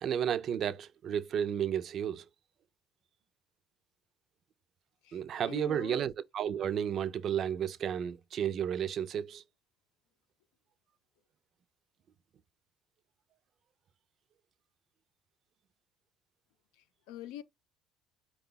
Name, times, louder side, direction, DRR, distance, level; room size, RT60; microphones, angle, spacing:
voice 1, 0.0-2.2 5.1-9.4, right 9 dB, 40° right, 0.5 m, -32 dB
voice 2, 5.0-6.1 16.8-17.4, left 11 dB, 90° left, 0.5 m, -44 dB
4.6 x 2.3 x 3.8 m
cardioid pair, 140°, 0 cm